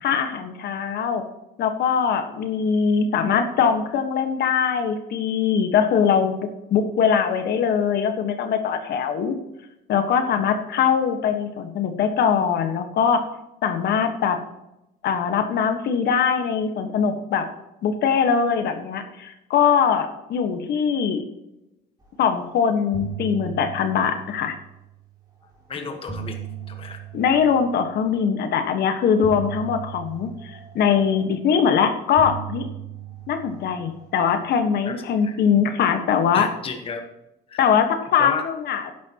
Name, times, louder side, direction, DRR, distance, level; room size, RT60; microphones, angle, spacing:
voice 1, 0.0-1.2 1.6-9.3 9.9-13.2 13.6-14.4 15.0-17.5 17.8-21.2 22.2-24.6 27.1-32.7 33.3-36.5 37.6-38.9, left 7 dB, 65° left, 7 dB, 1.5 m, -22 dB
sound 1, 22.3-22.5 22.8-25.1 25.8-28.2 29.2-31.7 32.2-34.7, right 8 dB, 25° right, 4.5 m, -37 dB
voice 2, 25.7-26.4 26.7-27.0 34.8-34.9 35.2-35.4 36.3-37.0 37.5-37.8 38.2-38.4, left 5 dB, 30° left, 5 dB, 1.3 m, -33 dB
12.5 x 10.5 x 3.0 m, 0.90 s
cardioid pair, 145°, 18 cm